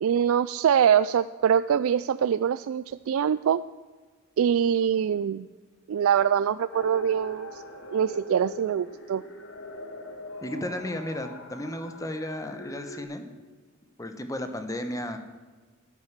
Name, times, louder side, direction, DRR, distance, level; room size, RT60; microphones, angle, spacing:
voice 1, 0.0-3.6 4.4-5.5 5.9-7.6 7.9-9.2, right 8 dB, 80° right, 14 dB, 0.3 m, -24 dB
sound 1, 6.7-13.0, left 1 dB, 65° left, 2.1 m, -41 dB
voice 2, 10.4-13.3 14.0-15.2, left 1 dB, 15° left, 8 dB, 1.1 m, -34 dB
12.5 x 9.9 x 7.4 m, 1.4 s
head